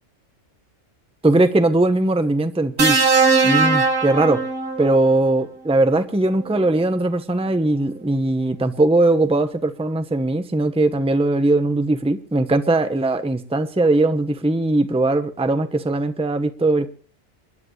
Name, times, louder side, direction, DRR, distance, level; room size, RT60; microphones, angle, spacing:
voice 1, 1.2-3.0 3.4-4.4 4.8-16.9, right 2 dB, 5° right, 9 dB, 0.9 m, -19 dB
sound 1, 2.8-5.0 6.4-6.6, right 4 dB, 45° right, 1.7 m, -19 dB
27.5 x 11.0 x 3.2 m, 0.37 s
omnidirectional pair, 1.3 m